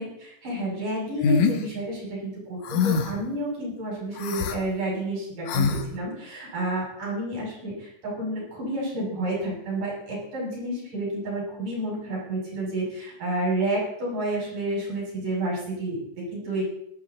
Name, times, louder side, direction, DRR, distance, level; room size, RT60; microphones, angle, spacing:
voice 1, 0.0-7.7 8.0-16.6, right 1 dB, 85° right, -4 dB, 8.7 m, -30 dB
sound 1, 1.2-1.6 2.7-3.2 4.2-4.6 5.5-5.8, left 6 dB, 80° left, 2.7 m, -23 dB
18.0 x 13.0 x 4.2 m, 0.73 s
omnidirectional pair, 3.6 m